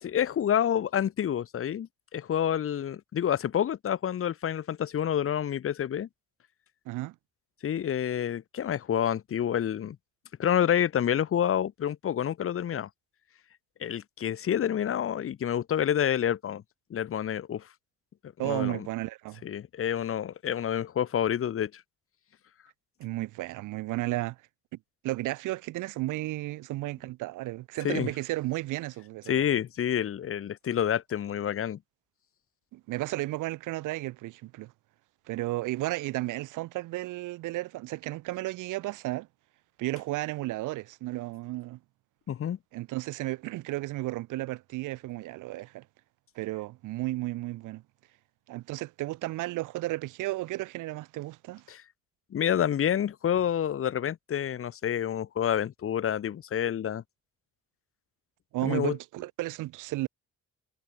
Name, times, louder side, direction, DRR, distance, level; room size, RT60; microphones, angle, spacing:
voice 1, 0.0-6.1 7.6-10.0 10.4-12.9 13.8-16.6 16.9-17.7 18.4-18.9 19.4-21.8 27.8-28.1 29.3-31.8 42.3-42.6 51.7-51.8 52.3-57.0 58.6-59.0, left 9 dB, 45° left, 0.9 m, -28 dB
voice 2, 18.4-19.4 23.0-24.4 25.0-29.5 32.7-34.7 35.3-39.3 39.8-41.8 42.7-45.8 46.4-47.8 48.5-51.6 58.5-60.1, right 18 dB, 85° right, 0.7 m, -33 dB
cardioid pair, 90°, 30 cm